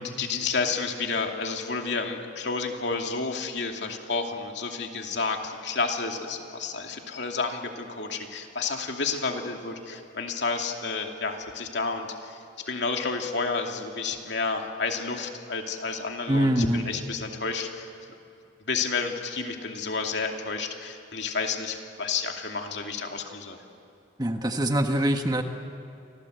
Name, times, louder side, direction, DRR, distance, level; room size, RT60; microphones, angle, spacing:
voice 1, 0.0-17.9 18.7-23.6, left 4 dB, 65° left, 3 dB, 2.6 m, -30 dB
voice 2, 16.3-16.8 24.2-25.4, right 1 dB, 20° right, 5 dB, 1.3 m, -24 dB
30.0 x 24.5 x 8.1 m, 2.6 s
head